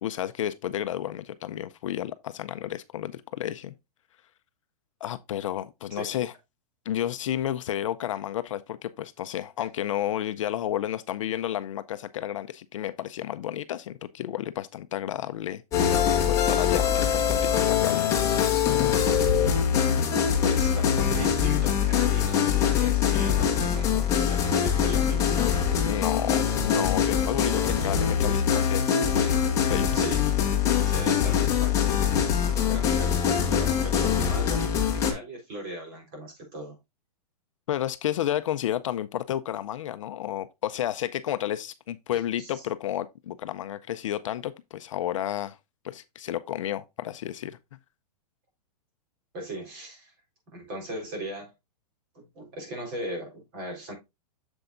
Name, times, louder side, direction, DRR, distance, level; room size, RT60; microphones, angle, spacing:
voice 1, 0.0-3.7 5.0-6.3 6.9-18.1 25.8-28.9 29.7-29.9 37.7-45.6 45.8-47.6, left 11 dB, 55° left, 0.5 m, -31 dB
sound 1, 15.7-35.1, left 8 dB, 15° left, 1.3 m, -23 dB
voice 2, 20.4-25.5 28.9-29.7 29.9-30.4 30.8-32.0 32.6-36.8 42.1-42.6 49.3-50.1 50.5-51.5 52.1-53.9, right 1 dB, 35° right, 3.9 m, -38 dB
8.0 x 7.0 x 2.5 m
supercardioid pair, 175°, 20 cm